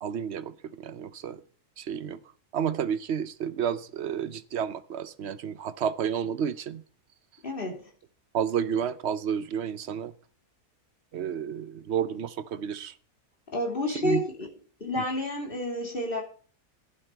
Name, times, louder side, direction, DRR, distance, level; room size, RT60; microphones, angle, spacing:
voice 1, 0.0-1.4 1.8-2.2 2.5-6.8 8.3-10.1 11.1-12.9 13.9-14.2 15.0-15.1, right 8 dB, 55° right, 0.8 m, -31 dB
voice 2, 7.4-7.8 13.5-14.5 14.8-16.2, left 1 dB, 35° left, 3.0 m, -30 dB
11.5 x 11.0 x 4.5 m
omnidirectional pair, 1.7 m